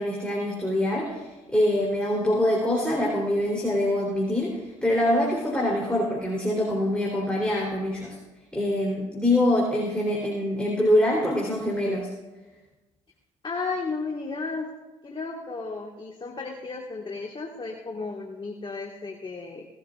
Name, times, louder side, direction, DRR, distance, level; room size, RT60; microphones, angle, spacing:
voice 1, 0.0-8.2 8.5-12.1, left 1 dB, 5° left, -3 dB, 3.6 m, -24 dB
voice 2, 13.4-14.7 15.0-19.7, left 4 dB, 35° left, 1 dB, 1.8 m, -34 dB
18.0 x 12.0 x 2.5 m, 1.2 s
hypercardioid pair, 55°, 15 cm